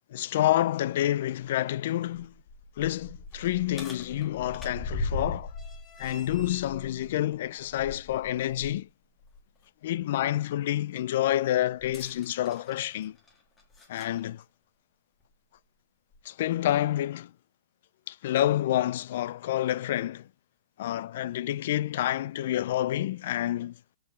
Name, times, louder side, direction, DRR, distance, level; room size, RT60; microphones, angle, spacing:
voice 1, 0.1-2.3 2.8-5.5 6.0-8.9 9.8-13.2 13.9-14.4 16.2-17.3 18.1-20.3 20.8-23.7, left 13 dB, 45° left, 0.4 m, -28 dB
sound 1, 2.2-8.8 9.2-9.4 11.8-14.2 15.2-15.3 16.1-16.2, left 2 dB, 10° left, 1.6 m, -39 dB
14.0 x 4.7 x 3.1 m
hypercardioid pair, 170°, 0 cm